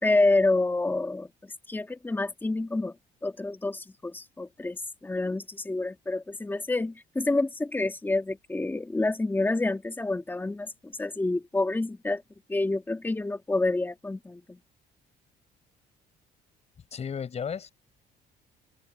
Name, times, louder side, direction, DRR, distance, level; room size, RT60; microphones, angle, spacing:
voice 1, 0.0-2.9 3.2-12.2 12.5-14.6, left 2 dB, 10° left, 1.9 m, -28 dB
voice 2, 16.9-17.7, left 7 dB, 40° left, 6.6 m, -33 dB
open air
cardioid pair, 110°, 17 cm